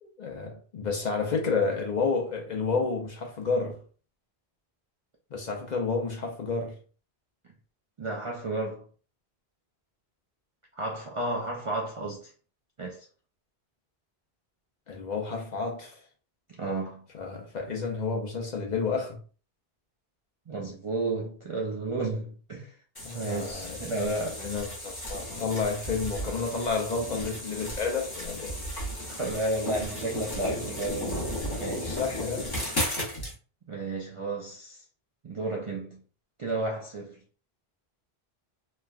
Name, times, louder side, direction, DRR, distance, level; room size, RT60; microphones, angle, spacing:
voice 1, 0.0-3.8 5.3-6.8 14.9-16.1 17.1-19.2 23.0-23.8 24.2-28.6 28.9-29.1 31.5-32.5, left 4 dB, 50° left, 0.6 m, -30 dB
voice 2, 8.0-8.9 10.7-12.3 12.8-13.1 16.6-17.1 20.5-22.7 23.1-24.5 29.1-32.0 33.7-34.8 35.2-36.0 36.4-37.2, right 2 dB, 50° right, 0.4 m, -32 dB
sound 1, 22.9-33.3, left 1 dB, 25° left, 0.9 m, -35 dB
3.2 x 2.2 x 2.3 m
omnidirectional pair, 1.1 m